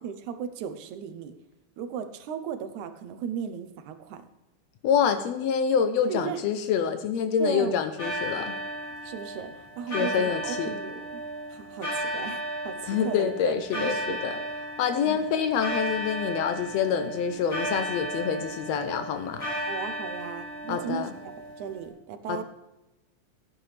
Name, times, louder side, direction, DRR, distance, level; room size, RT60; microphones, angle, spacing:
voice 1, 0.0-1.3 1.8-4.2 6.1-6.4 7.4-7.8 9.0-11.2 11.5-12.8 13.0-14.2 15.1-15.2 19.7-22.4, right 7 dB, 80° right, 10 dB, 2.2 m, -36 dB
voice 2, 4.8-8.5 9.9-10.8 12.8-14.4 14.8-19.5 20.7-21.1 22.3-22.4, left 7 dB, 75° left, 9 dB, 1.7 m, -26 dB
sound 1, 8.0-21.9, right 1 dB, 25° left, 3.0 m, -34 dB
15.0 x 9.0 x 3.3 m, 0.98 s
omnidirectional pair, 3.4 m